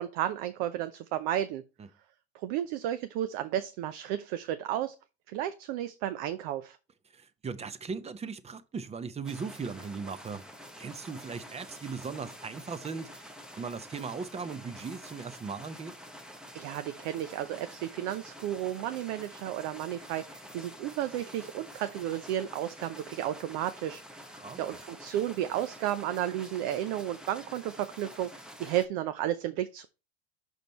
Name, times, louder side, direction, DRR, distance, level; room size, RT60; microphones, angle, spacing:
voice 1, 0.0-1.6 2.3-4.9 5.3-6.8 16.5-29.9, right 12 dB, 60° right, 0.7 m, -33 dB
voice 2, 7.1-10.5 10.8-13.3 13.6-15.9 24.3-24.6, right 5 dB, 20° right, 0.8 m, -38 dB
sound 1, 9.2-28.9, equal, ahead, 1.0 m, -48 dB
6.3 x 5.1 x 4.2 m
hypercardioid pair, 95°, 32 cm